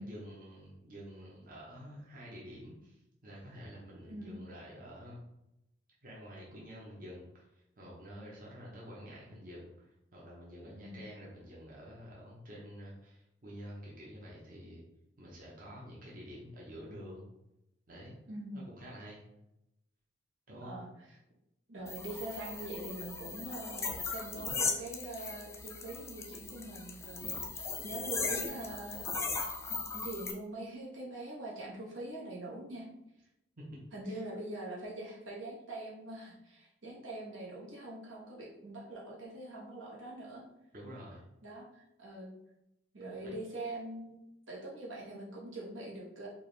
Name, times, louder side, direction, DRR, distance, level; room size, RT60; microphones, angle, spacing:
voice 1, 0.0-5.2 6.0-14.8 15.2-17.2 17.9-18.1 18.5-19.2 20.5-20.7 34.0-34.2 40.7-41.2 43.2-43.3, equal, 45° right, -4 dB, 0.8 m, -49 dB
voice 2, 4.0-4.4 10.6-11.0 18.3-18.7 20.6-20.9 21.7-23.9 24.1-29.1 29.4-32.9 33.9-40.5 41.4-42.3 42.9-44.2 44.5-46.3, right 2 dB, 85° right, -4 dB, 1.3 m, -43 dB
sound 1, 21.9-30.3, left 4 dB, 15° left, 0.3 m, -38 dB
4.6 x 2.5 x 3.3 m, 0.87 s
head